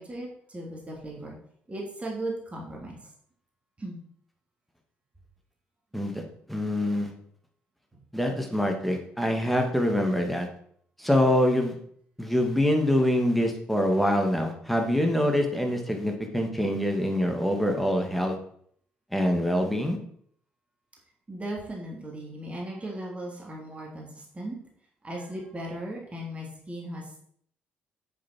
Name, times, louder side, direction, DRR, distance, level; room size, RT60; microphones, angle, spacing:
voice 1, 0.0-1.4 1.7-3.0 3.8-4.0 21.3-24.6 25.0-27.2, right 1 dB, 25° right, -2 dB, 3.3 m, -37 dB
voice 2, 6.5-7.1 8.1-10.5 11.0-11.7 12.2-18.4 19.1-20.0, left 1 dB, ahead, 3 dB, 2.4 m, -25 dB
8.7 x 7.5 x 4.7 m, 0.63 s
figure-of-eight pair, 45°, 5 cm